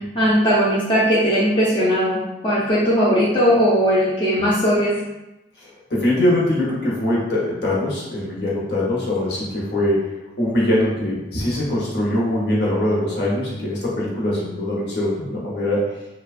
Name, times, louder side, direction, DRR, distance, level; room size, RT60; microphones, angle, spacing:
voice 1, 0.0-4.9, equal, 25° left, -9 dB, 0.5 m, -18 dB
voice 2, 5.9-10.0 10.4-15.8, left 1 dB, 60° left, -5 dB, 0.8 m, -22 dB
2.8 x 2.2 x 2.4 m, 0.97 s
head